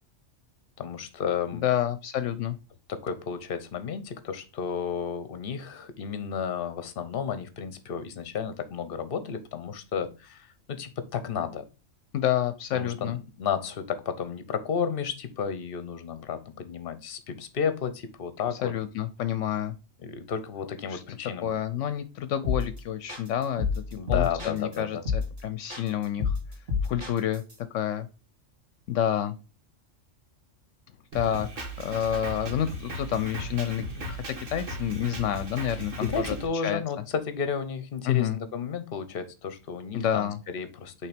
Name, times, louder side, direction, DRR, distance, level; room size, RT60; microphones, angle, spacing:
voice 1, 0.8-1.7 2.9-11.7 12.7-13.1 13.4-18.7 20.0-21.5 24.0-25.0 35.7-41.1, left 7 dB, 50° left, 11 dB, 0.9 m, -32 dB
voice 2, 1.6-2.6 12.1-13.2 18.6-19.7 20.9-21.0 21.4-26.4 26.8-27.4 27.7-28.1 28.9-29.3 31.1-36.4 36.6-36.8 38.1-38.4 39.9-40.4, left 10 dB, 75° left, 12 dB, 0.9 m, -29 dB
sound 1, 22.4-22.8 23.1-24.8 25.1-25.4 25.7-27.5, left 5 dB, 50° right, 2.5 m, -29 dB
Drum kit, 31.1-36.5, right 1 dB, 80° right, 1.8 m, -37 dB
5.7 x 3.4 x 5.0 m, 0.31 s
omnidirectional pair, 1.3 m